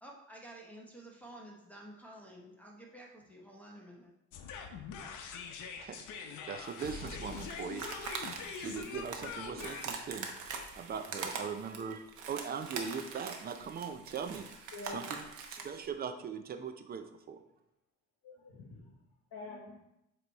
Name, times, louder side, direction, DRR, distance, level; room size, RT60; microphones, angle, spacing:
voice 1, 0.0-4.1, right 1 dB, 5° left, -4 dB, 0.8 m, -51 dB
sound 1, 4.3-11.4, left 6 dB, 80° left, 0.8 m, -44 dB
voice 2, 5.5-7.9 8.6-10.3 10.8-14.5 14.9-15.3 15.5-17.4, right 6 dB, 30° right, 8 dB, 0.5 m, -40 dB
sound 2, 6.7-15.8, right 5 dB, 85° right, 1.0 m, -43 dB
voice 3, 11.4-11.7 14.7-15.2 18.2-19.0 19.3-19.8, left 2 dB, 65° left, -3 dB, 1.4 m, -47 dB
7.9 x 3.0 x 4.0 m, 0.87 s
cardioid pair, 135°, 30 cm